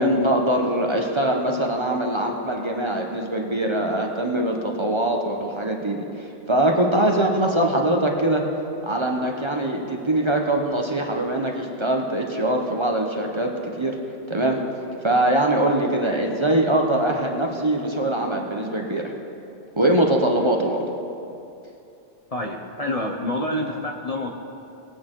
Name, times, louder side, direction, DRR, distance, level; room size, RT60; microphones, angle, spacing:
voice 1, 0.0-8.4 8.8-13.9 14.3-14.6 15.0-19.0 19.8-20.8, right 1 dB, 25° right, 1 dB, 1.0 m, -22 dB
voice 2, 22.3-24.3, left 1 dB, 40° left, 1 dB, 0.8 m, -27 dB
21.0 x 8.5 x 3.8 m, 2.7 s
omnidirectional pair, 1.1 m